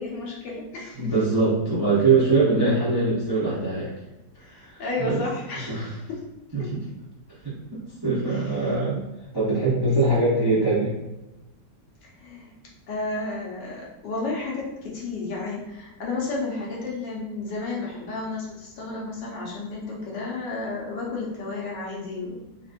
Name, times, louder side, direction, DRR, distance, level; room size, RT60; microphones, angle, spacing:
voice 1, 0.0-1.0 4.4-6.2 6.6-6.7 8.3-8.7 10.1-10.5 12.0-12.5 12.9-22.4, left 3 dB, 80° left, -4 dB, 1.6 m, -32 dB
voice 2, 1.0-3.9 4.5-5.2 5.7-5.9 6.5-6.8 7.4-7.5 8.0-9.0 9.3-10.9, right 3 dB, 30° right, -7 dB, 0.4 m, -22 dB
4.1 x 2.6 x 2.5 m, 0.98 s
omnidirectional pair, 1.9 m